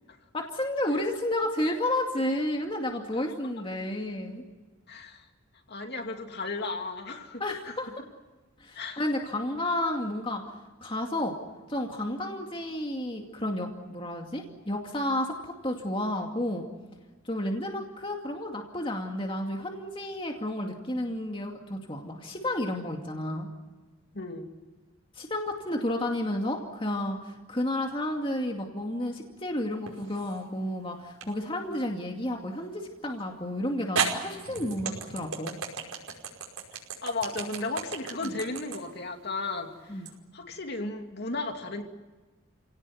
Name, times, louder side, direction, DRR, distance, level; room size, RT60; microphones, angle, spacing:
voice 1, 0.3-4.4 7.4-7.9 8.6-10.4 10.8-11.4 11.7-16.7 17.2-23.5 25.1-35.6 38.2-38.4 39.9-40.1, left 1 dB, 25° left, 2 dB, 2.4 m, -31 dB
voice 2, 4.9-5.2 5.7-7.7 8.7-9.0 24.1-24.5 37.0-40.0 40.3-41.8, left 3 dB, 50° left, 4 dB, 2.7 m, -34 dB
sound 1, 29.9-30.4 31.2-31.3 33.2-33.3 34.0-40.2, right 5 dB, 80° right, 5.2 m, -33 dB
29.5 x 18.0 x 9.6 m, 1.3 s
head